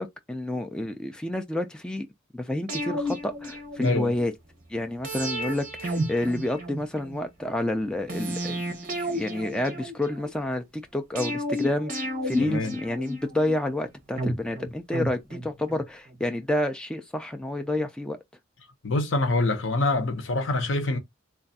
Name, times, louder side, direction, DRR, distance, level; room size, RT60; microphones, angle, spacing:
voice 1, 0.0-2.1 2.3-4.3 4.7-8.6 9.0-18.2, left 1 dB, 5° left, 0.3 m, -29 dB
sound 1, 2.7-4.3 5.0-7.2 8.1-10.3 11.2-13.5 14.2-15.8 16.1-16.2, equal, 40° right, 1.2 m, -32 dB
voice 2, 3.8-4.1 12.4-12.7 18.8-21.0, left 2 dB, 75° left, 0.8 m, -25 dB
3.4 x 2.3 x 4.0 m
head